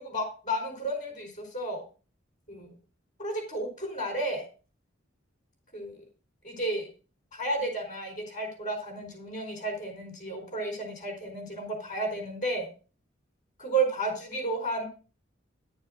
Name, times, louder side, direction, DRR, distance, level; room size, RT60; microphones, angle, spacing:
voice 1, 0.0-1.8 2.5-2.7 3.2-4.4 5.7-6.0 6.4-6.9 7.3-12.7 13.6-14.9, right 2 dB, 40° left, 1 dB, 4.4 m, -32 dB
11.5 x 6.8 x 6.5 m, 0.36 s
head